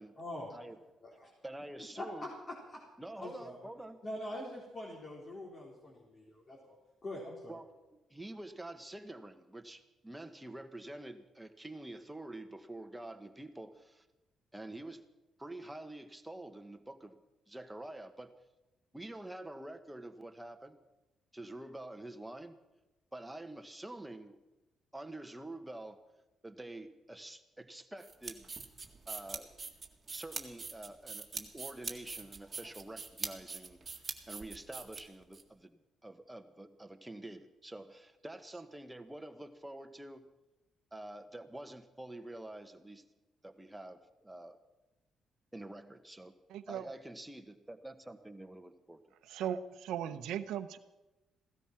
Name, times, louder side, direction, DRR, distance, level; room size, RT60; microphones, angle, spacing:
voice 1, 0.2-1.3 2.0-2.8 3.1-3.6 4.0-6.8 7.0-7.6, left 1 dB, 40° left, -3 dB, 4.0 m, -44 dB
voice 2, 1.4-2.3 3.0-4.0 7.5-7.7 8.1-14.0 14.5-15.0 15.4-17.2 17.5-18.3 18.9-20.8 21.3-22.6 23.1-24.4 24.9-26.0 26.4-28.5 29.1-29.5 30.1-33.8 34.3-40.2 40.9-43.0 43.4-44.6 45.5-46.3 46.7-49.0, right 1 dB, 10° right, 7 dB, 1.3 m, -47 dB
sound 1, 28.0-35.4, right 4 dB, 30° right, 1.9 m, -43 dB
voice 3, 46.5-46.8 49.3-50.8, right 9 dB, 85° right, 10 dB, 0.8 m, -37 dB
16.5 x 13.0 x 6.0 m, 1.0 s
cardioid pair, 90°, 0 cm